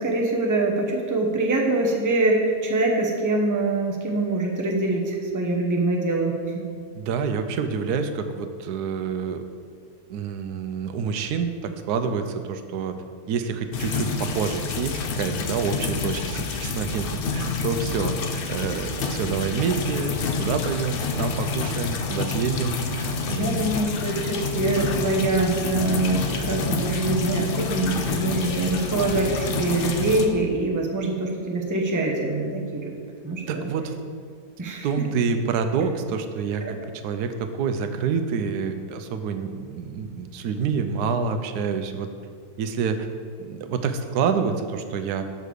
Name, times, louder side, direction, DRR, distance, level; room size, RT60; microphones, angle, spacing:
voice 1, 0.0-6.6 23.3-32.9 33.2-33.7 34.6-35.0 36.6-36.8, right 2 dB, 15° right, 0 dB, 0.7 m, -24 dB
voice 2, 7.0-9.4 10.1-12.9 13.3-23.7 33.5-33.9 34.8-36.8 37.0-42.1 42.6-43.1 43.4-45.2, right 6 dB, 85° right, 8 dB, 1.2 m, -27 dB
sound 1, 13.7-30.3, left 4 dB, 65° left, 0.5 m, -28 dB
6.6 x 5.1 x 6.3 m, 2.1 s
omnidirectional pair, 1.6 m